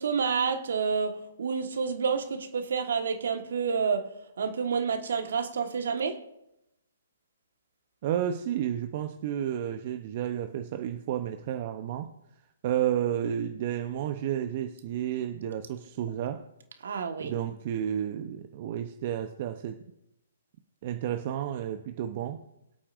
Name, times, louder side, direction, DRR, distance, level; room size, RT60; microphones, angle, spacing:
voice 1, 0.0-4.1 4.4-6.2 16.8-17.3, right 6 dB, 65° right, 6 dB, 1.5 m, -29 dB
voice 2, 8.0-12.1 12.6-16.4 17.2-19.8 20.8-22.4, right 10 dB, 45° right, 7 dB, 0.7 m, -31 dB
24.5 x 8.6 x 2.6 m, 0.86 s
figure-of-eight pair, 130°, 0 cm